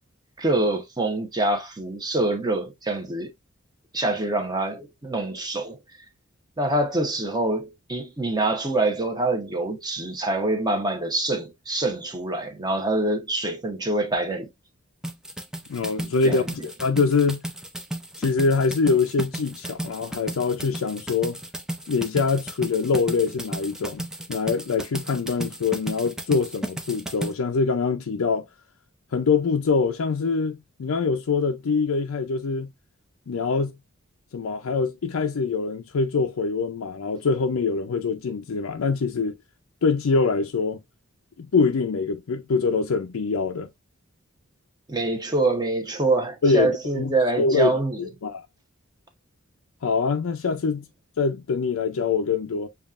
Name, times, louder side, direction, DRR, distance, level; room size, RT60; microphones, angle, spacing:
voice 1, 0.4-3.3 3.9-5.8 6.6-14.5 16.2-16.5 44.9-48.1, right 2 dB, 20° right, 0.9 m, -25 dB
sound 1, 15.0-27.3, right 1 dB, 5° right, 0.4 m, -34 dB
voice 2, 15.7-17.4 18.2-21.4 21.9-28.4 29.1-32.7 33.3-33.7 34.3-39.4 39.8-40.8 41.4-43.7 46.4-48.4 49.8-50.8 51.2-52.7, left 4 dB, 85° left, 0.5 m, -24 dB
7.1 x 2.4 x 2.4 m
head